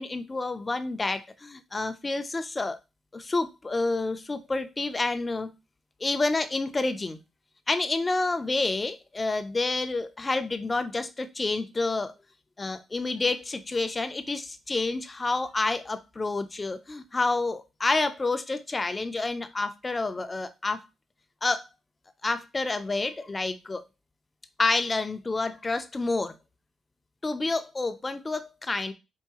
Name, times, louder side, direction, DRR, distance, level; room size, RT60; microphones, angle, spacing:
voice 1, 0.0-2.8 3.1-5.5 6.0-7.2 7.7-12.1 12.6-20.9 21.4-21.7 22.2-23.8 24.6-26.4 27.2-28.9, left 3 dB, 25° left, 0.6 m, -29 dB
4.6 x 2.6 x 3.0 m
cardioid pair, 80°, 0 cm